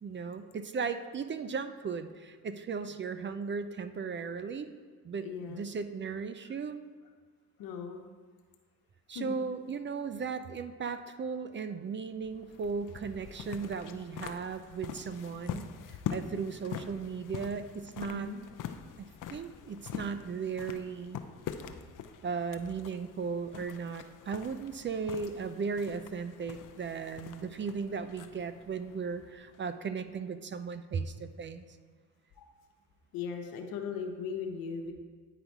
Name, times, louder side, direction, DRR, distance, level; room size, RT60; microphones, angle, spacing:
voice 1, 0.0-4.7 5.0-6.8 9.1-18.3 19.0-21.2 22.2-31.7, right 5 dB, 35° right, 11 dB, 0.4 m, -36 dB
voice 2, 5.2-5.6 7.6-8.0 9.1-9.4 18.1-18.4 32.4-32.5 33.1-34.9, left 6 dB, 85° left, 4 dB, 0.9 m, -38 dB
sound 1, 12.2-29.8, left 8 dB, 60° left, 0.6 m, -44 dB
9.3 x 4.0 x 4.6 m, 1.5 s
supercardioid pair, 65°, 35 cm